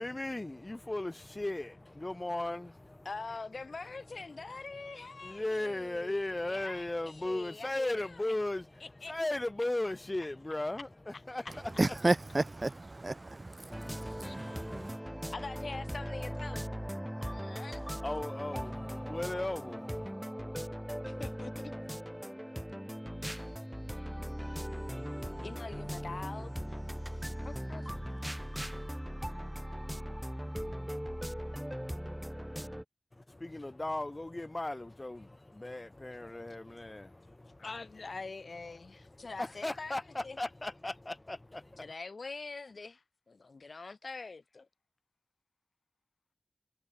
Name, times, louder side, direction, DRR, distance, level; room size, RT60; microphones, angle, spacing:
voice 1, 0.0-3.3 3.8-12.0 18.0-20.2 33.1-37.8 38.7-41.9, left 2 dB, 30° left, 6.4 m, -37 dB
voice 2, 3.0-8.1 9.0-9.1 14.2-16.7 17.2-17.8 21.1-21.7 25.4-26.5 27.4-27.9 37.6-40.0 40.2-40.4 41.8-44.7, left 3 dB, 80° left, 1.7 m, -44 dB
voice 3, 11.8-15.0, right 2 dB, 40° right, 1.2 m, -32 dB
sound 1, 13.7-32.8, equal, 5° right, 1.1 m, -39 dB
wide cardioid pair, 75°, 0 cm